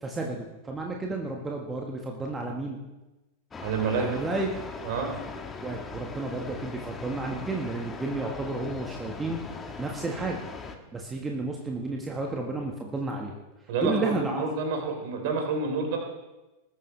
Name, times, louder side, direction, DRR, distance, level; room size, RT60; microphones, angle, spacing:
voice 1, 0.0-2.8 4.0-4.5 5.6-9.4 9.8-10.4 10.9-13.3 13.8-14.4, right 2 dB, 15° right, 1 dB, 1.5 m, -32 dB
sound 1, 3.5-10.8, left 4 dB, 20° left, 1.5 m, -40 dB
voice 2, 3.6-4.1 4.8-5.1 13.7-16.0, right 4 dB, 50° right, 2 dB, 3.8 m, -28 dB
20.5 x 12.5 x 3.4 m, 1.1 s
figure-of-eight pair, 90°, 0 cm